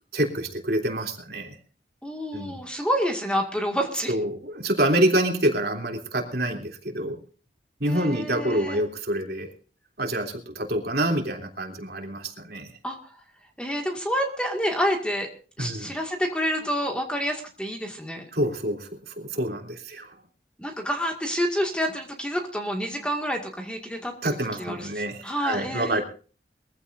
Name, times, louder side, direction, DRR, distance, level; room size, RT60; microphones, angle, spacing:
voice 1, 0.1-1.5 2.3-2.5 4.1-7.2 7.8-9.5 10.0-12.7 15.6-15.9 18.3-20.1 24.2-26.0, right 1 dB, 60° right, 2 dB, 3.2 m, -27 dB
voice 2, 2.0-4.1 7.9-8.8 12.8-13.1 13.6-15.3 15.6-18.3 20.6-24.1 24.6-26.0, equal, 5° left, 2 dB, 2.1 m, -28 dB
23.0 x 15.5 x 2.6 m, 0.39 s
head